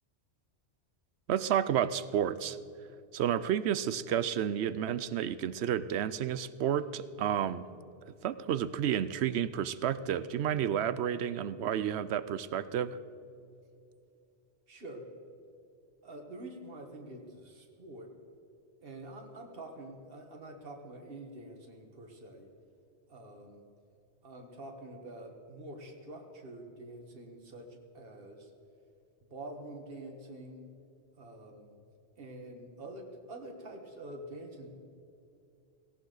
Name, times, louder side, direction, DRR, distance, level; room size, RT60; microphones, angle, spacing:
voice 1, 1.3-2.6 3.1-7.7 8.2-13.0, right 9 dB, 75° right, 15 dB, 0.8 m, -31 dB
voice 2, 14.7-15.0 16.0-18.1 18.8-22.5 23.1-23.6 24.2-28.5 29.3-30.7 31.2-31.7 32.2-34.7, right 1 dB, 55° right, 3 dB, 1.7 m, -46 dB
17.5 x 17.0 x 4.0 m, 2.6 s
omnidirectional pair, 1.1 m